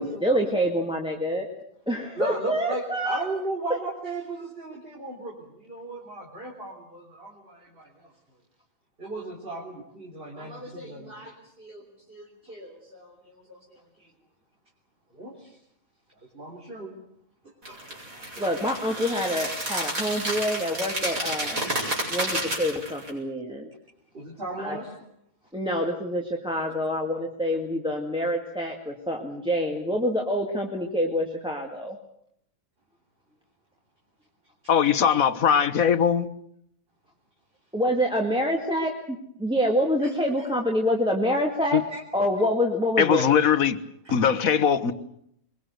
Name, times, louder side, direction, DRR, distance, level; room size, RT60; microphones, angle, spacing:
voice 1, 0.0-1.5 1.9-3.2 18.4-21.7 22.1-23.7 24.6-24.8 25.5-32.0 37.7-41.8 42.1-43.3, equal, 5° right, 2.1 m, -26 dB
voice 2, 2.2-8.1 9.0-14.1 15.1-15.6 16.3-16.9 17.4-17.8 24.1-25.0 40.0-40.1 41.9-42.0 43.2-43.3 44.1-44.2, right 2 dB, 40° right, 3.7 m, -37 dB
sound 1, 17.6-23.1, right 1 dB, 70° right, 7.1 m, -30 dB
voice 3, 34.7-36.3 41.7-41.8 43.0-43.8 44.1-44.9, left 8 dB, 75° left, 1.6 m, -20 dB
22.5 x 22.5 x 8.1 m
omnidirectional pair, 1.5 m